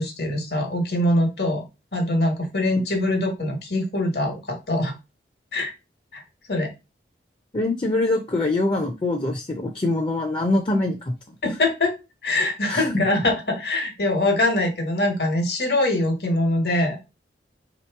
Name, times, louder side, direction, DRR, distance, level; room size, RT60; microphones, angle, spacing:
voice 1, 0.0-1.6 1.9-4.9 5.5-5.7 6.1-6.2 6.5-6.7 11.4-11.9 12.2-17.0, left 1 dB, 65° left, 4 dB, 1.2 m, -23 dB
voice 2, 7.5-11.1 12.7-13.0, left 2 dB, 25° left, 3 dB, 0.5 m, -24 dB
3.1 x 2.9 x 4.5 m, 0.26 s
head